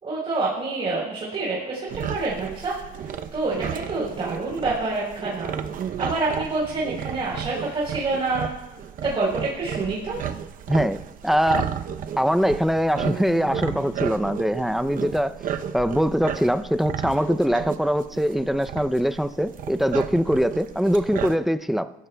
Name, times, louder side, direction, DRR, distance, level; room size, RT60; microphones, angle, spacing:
voice 1, 0.0-2.7 3.3-5.5 6.0-8.5 9.0-10.2, right 3 dB, 35° right, -5 dB, 4.0 m, -27 dB
sound 1, 1.9-21.4, right 8 dB, 55° right, 0.7 m, -33 dB
voice 2, 10.7-11.7 12.2-15.4 15.7-21.9, equal, ahead, 12 dB, 0.5 m, -22 dB
sound 2, 13.0-16.2, equal, 45° left, 5.1 m, -41 dB
22.0 x 13.5 x 2.3 m, 1.0 s
cardioid pair, 110°, 17 cm